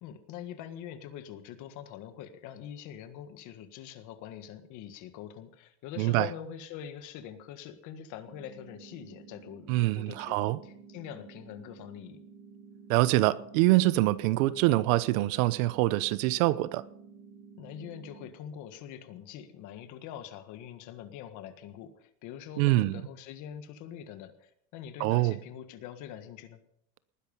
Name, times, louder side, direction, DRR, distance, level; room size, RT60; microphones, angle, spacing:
voice 1, 0.0-12.2 17.6-26.6, left 9 dB, 45° left, 1.6 m, -44 dB
sound 1, 8.2-18.3, right 5 dB, 20° right, 4.5 m, -52 dB
voice 2, 9.7-10.6 12.9-16.8 22.6-23.0 25.0-25.4, right 18 dB, 75° right, 0.9 m, -25 dB
19.5 x 10.5 x 5.5 m
cardioid pair, 175°, 41 cm